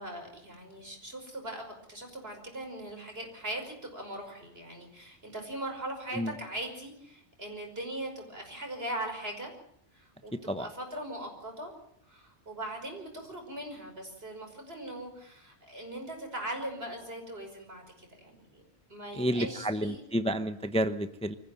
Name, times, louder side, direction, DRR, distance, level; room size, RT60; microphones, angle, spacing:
voice 1, 0.0-9.5 9.9-11.7 12.0-18.6 18.9-20.0, right 1 dB, 65° right, 3 dB, 5.9 m, -40 dB
voice 2, 19.2-21.3, equal, 5° left, 10 dB, 0.8 m, -30 dB
24.5 x 15.0 x 9.2 m, 0.72 s
omnidirectional pair, 1.1 m